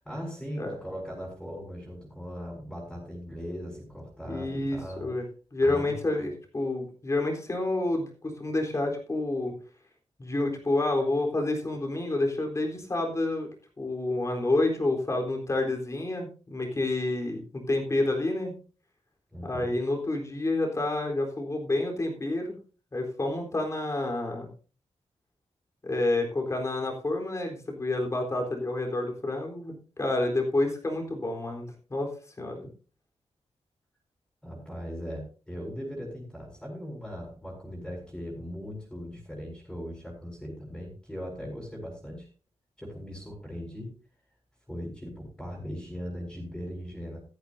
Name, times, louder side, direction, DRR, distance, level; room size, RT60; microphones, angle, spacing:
voice 1, 0.0-5.1 5.6-6.0 19.3-19.7 34.4-42.3 42.8-43.9 44.7-47.2, equal, 5° left, -2 dB, 5.9 m, -39 dB
voice 2, 4.3-5.2 5.5-9.5 10.2-13.5 13.8-18.5 19.4-22.6 22.9-24.5 25.8-32.1 32.4-32.6, left 2 dB, 25° left, 1 dB, 3.9 m, -29 dB
15.5 x 14.0 x 2.7 m, 0.37 s
wide cardioid pair, 160°, 11 cm